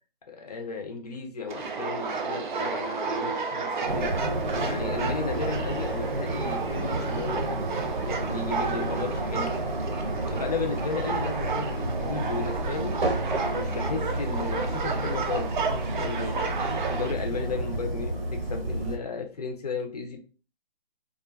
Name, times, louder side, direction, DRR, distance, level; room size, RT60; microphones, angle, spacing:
voice 1, 0.3-4.1 4.6-7.6 8.1-9.5 10.3-13.0 13.6-16.5 16.9-20.2, left 4 dB, 40° left, 4 dB, 0.5 m, -34 dB
sound 1, 1.5-17.1, right 4 dB, 55° right, 0.5 m, -32 dB
sound 2, 3.9-19.0, right 1 dB, 70° right, 0.8 m, -31 dB
2.4 x 2.4 x 2.2 m, 0.37 s
hypercardioid pair, 160°, 30 cm